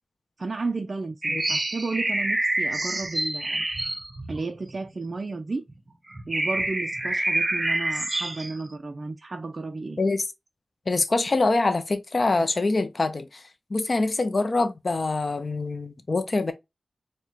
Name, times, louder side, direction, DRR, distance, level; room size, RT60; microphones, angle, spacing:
voice 1, 0.4-3.7 4.3-5.6 6.3-10.0, right 3 dB, 45° right, 0.3 m, -33 dB
sound 1, 1.2-5.1 5.7-5.8 6.1-8.6, right 2 dB, 25° right, 0.7 m, -27 dB
voice 2, 10.9-13.4 13.7-16.5, left 3 dB, 45° left, 0.5 m, -25 dB
4.6 x 2.1 x 2.7 m
wide cardioid pair, 110°, 0 cm